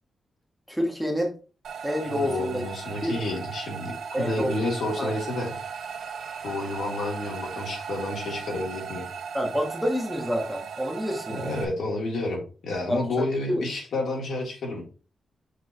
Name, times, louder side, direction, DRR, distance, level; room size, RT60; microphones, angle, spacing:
voice 1, 0.7-1.3 1.8-2.6 3.0-3.2 4.1-4.7 5.0-5.1 9.3-11.6 12.9-13.6, equal, ahead, 0 dB, 1.3 m, -28 dB
sound 1, 1.6-11.6, right 7 dB, 75° right, 1.0 m, -37 dB
voice 2, 2.0-5.5 6.4-9.1 11.3-14.8, left 2 dB, 65° left, -2 dB, 3.2 m, -30 dB
6.5 x 3.7 x 4.9 m, 0.35 s
wide cardioid pair, 170°, 0 cm